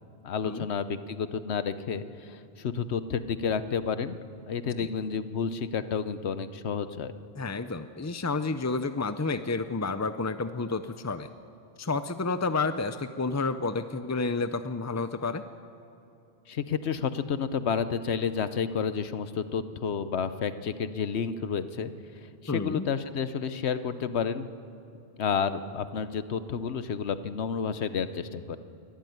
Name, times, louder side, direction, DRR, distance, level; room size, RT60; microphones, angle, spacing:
voice 1, 0.2-4.2 4.5-7.1 16.5-24.5 25.2-28.6, left 6 dB, 80° left, 12 dB, 1.1 m, -30 dB
voice 2, 7.4-11.3 11.8-15.4 22.5-22.9, left 3 dB, 25° left, 10 dB, 0.3 m, -30 dB
23.0 x 13.0 x 9.4 m, 2.9 s
omnidirectional pair, 1.1 m